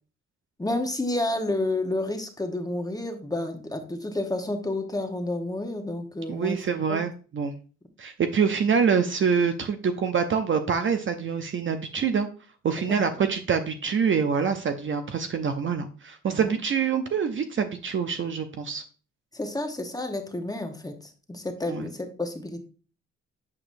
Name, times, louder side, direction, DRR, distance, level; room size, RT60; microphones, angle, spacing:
voice 1, 0.6-6.6 6.9-7.0 16.3-16.6 19.3-20.9 21.3-22.7, left 2 dB, 10° left, 5 dB, 1.1 m, -30 dB
voice 2, 6.3-7.5 8.0-12.3 12.6-18.8 21.7-21.9, right 6 dB, 40° right, 7 dB, 0.6 m, -25 dB
8.3 x 4.9 x 2.6 m, 0.38 s
cardioid pair, 90°, 30 cm